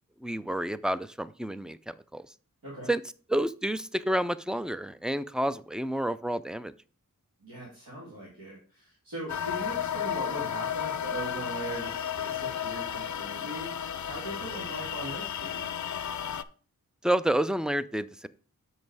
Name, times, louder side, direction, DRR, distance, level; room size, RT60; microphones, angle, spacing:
voice 1, 0.2-2.3 2.9-3.0 3.3-6.7 17.0-18.3, right 1 dB, ahead, 15 dB, 0.4 m, -29 dB
voice 2, 7.4-13.7 14.0-15.7, right 1 dB, 90° right, -6 dB, 2.4 m, -40 dB
sound 1, 9.3-16.4, left 9 dB, 55° left, 0.5 m, -33 dB
7.0 x 5.3 x 4.6 m, 0.40 s
cardioid pair, 45°, 35 cm